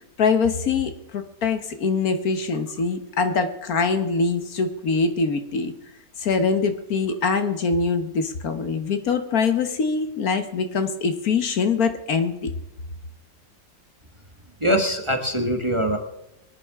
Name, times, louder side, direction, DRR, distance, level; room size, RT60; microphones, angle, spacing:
voice 1, 0.2-5.7 6.2-12.5, left 4 dB, 65° left, 8 dB, 1.5 m, -23 dB
voice 2, 14.6-16.0, equal, 20° right, 4 dB, 1.2 m, -22 dB
23.0 x 10.5 x 3.6 m, 0.88 s
omnidirectional pair, 1.8 m